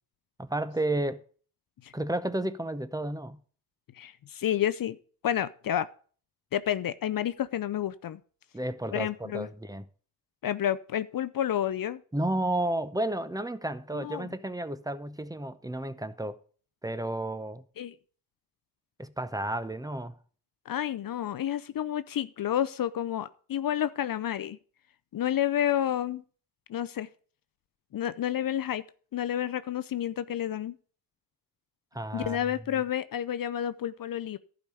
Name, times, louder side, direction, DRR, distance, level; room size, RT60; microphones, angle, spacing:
voice 1, 0.4-1.2 1.9-3.4 8.5-9.8 12.1-16.4 16.8-17.6 19.0-20.2 31.9-32.4, right 1 dB, 10° right, 0.8 m, -32 dB
voice 2, 3.9-5.0 5.2-5.9 6.5-8.2 8.9-9.5 10.4-12.0 13.9-14.3 17.8-17.9 20.7-24.6 25.1-26.2 26.7-27.1 27.9-28.8 29.1-30.8 32.1-34.4, left 11 dB, 55° left, 0.6 m, -30 dB
11.5 x 5.1 x 6.8 m
cardioid pair, 80°, 42 cm